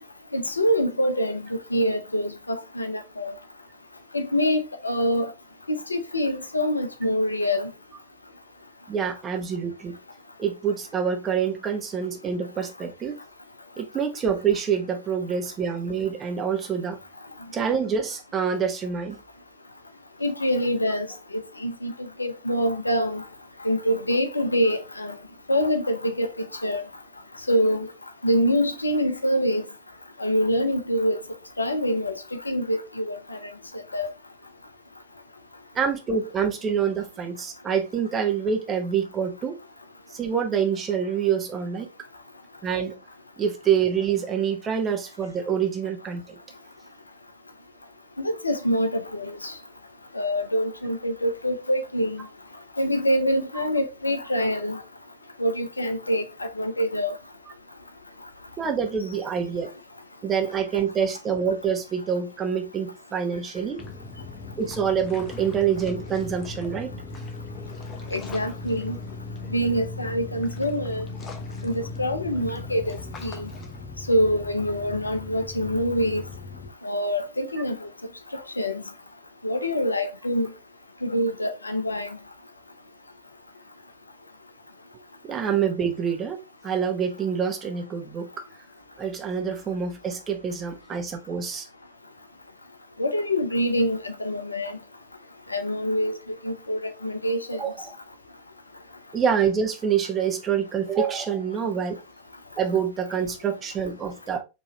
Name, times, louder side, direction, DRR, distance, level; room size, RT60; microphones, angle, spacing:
voice 1, 0.3-3.3 4.1-5.3 5.7-7.7 20.2-21.1 21.6-21.9 22.2-23.2 23.6-25.1 25.5-26.3 26.6-26.8 27.5-27.9 28.2-29.7 30.2-31.2 31.6-33.5 33.9-34.1 48.2-49.5 50.1-52.2 52.8-54.8 55.4-57.1 68.1-69.0 69.5-71.1 71.6-73.5 74.1-76.2 76.8-77.9 78.3-78.8 79.4-80.5 81.0-82.2 93.0-94.8 95.5-96.2 96.4-97.6, equal, 80° left, 0.6 m, -25 dB
voice 2, 8.9-10.0 10.4-13.2 13.8-17.0 17.5-19.2 35.7-39.6 40.1-41.9 42.6-43.0 43.4-46.3 58.6-59.7 60.2-63.8 64.6-66.9 85.2-86.4 86.6-88.4 89.0-91.7 97.5-97.9 99.1-102.0 102.6-104.4, right 7 dB, 25° right, 1.0 m, -26 dB
sound 1, 63.8-76.7, left 3 dB, 25° left, 0.8 m, -38 dB
4.6 x 3.0 x 3.0 m
figure-of-eight pair, 90°, 0 cm